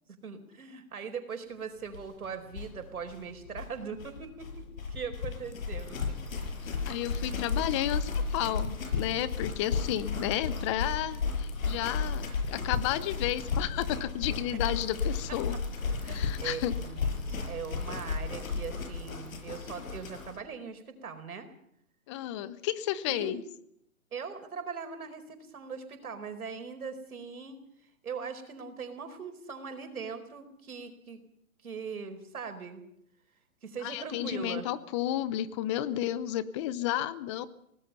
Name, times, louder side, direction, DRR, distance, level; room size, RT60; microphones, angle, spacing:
voice 1, 0.2-6.0 14.5-14.7 15.3-15.4 16.0-21.5 23.1-23.4 24.1-31.2 31.6-32.8 33.6-34.7, right 6 dB, 90° right, 7 dB, 4.6 m, -40 dB
sound 1, 1.9-2.0 2.2-2.3 2.5-20.4, left 5 dB, 70° left, 6.8 m, -34 dB
voice 2, 6.6-15.6 16.1-16.7 22.1-23.4 33.8-37.5, left 12 dB, 20° left, 16 dB, 0.7 m, -32 dB
25.0 x 18.5 x 5.6 m, 0.74 s
hypercardioid pair, 150°, 42 cm